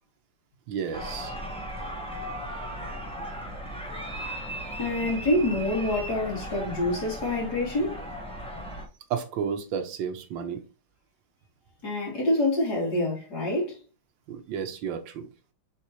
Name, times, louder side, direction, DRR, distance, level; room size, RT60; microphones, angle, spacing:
voice 1, 0.7-1.3 9.1-10.6 14.3-15.3, right 7 dB, 90° right, 1.6 m, -32 dB
sound 1, 0.9-8.9, equal, 5° left, 1.1 m, -37 dB
voice 2, 4.8-8.0 11.8-13.8, left 1 dB, 60° left, 3.3 m, -26 dB
7.3 x 4.1 x 3.1 m
omnidirectional pair, 2.0 m